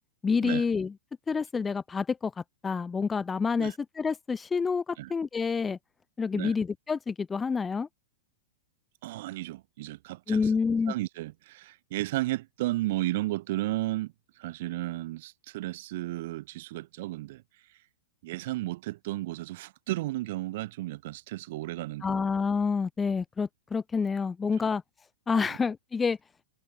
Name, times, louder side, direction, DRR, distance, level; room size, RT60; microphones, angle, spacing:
voice 1, 0.2-0.9 1.3-2.3 2.6-5.8 6.2-7.9 10.3-10.9 22.0-24.8 25.3-26.2, left 5 dB, 15° left, 0.6 m, -28 dB
voice 2, 9.0-17.4 18.2-22.3 24.6-24.7 25.5-25.6, right 17 dB, 60° right, 1.8 m, -34 dB
hypercardioid pair, 105°, 0 cm